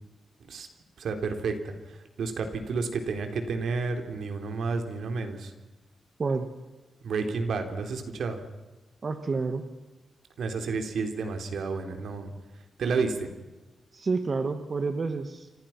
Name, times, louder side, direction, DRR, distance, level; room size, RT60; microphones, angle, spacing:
voice 1, 1.0-5.5 7.0-8.4 10.4-12.3 12.8-13.3, right 4 dB, 75° right, 6 dB, 3.8 m, -31 dB
voice 2, 9.0-9.6 13.9-15.5, right 4 dB, 35° right, 8 dB, 1.5 m, -29 dB
28.5 x 26.0 x 6.0 m, 1.2 s
wide cardioid pair, 160°, 0 cm